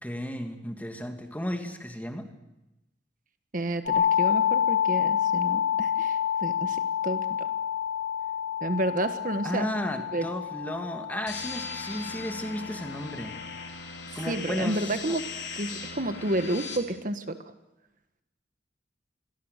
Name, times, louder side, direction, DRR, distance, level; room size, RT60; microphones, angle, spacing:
voice 1, 0.0-2.3 9.4-13.4 14.2-15.2, equal, 10° left, 5 dB, 2.5 m, -34 dB
voice 2, 3.5-7.5 8.6-9.6 10.1-10.3 14.3-15.3 15.5-17.4, right 1 dB, 50° right, 9 dB, 1.5 m, -30 dB
sound 1, 3.9-13.6, left 9 dB, 45° left, 3.7 m, -28 dB
sound 2, 11.3-16.8, left 4 dB, 80° left, 4.1 m, -39 dB
27.5 x 22.5 x 6.7 m, 0.94 s
head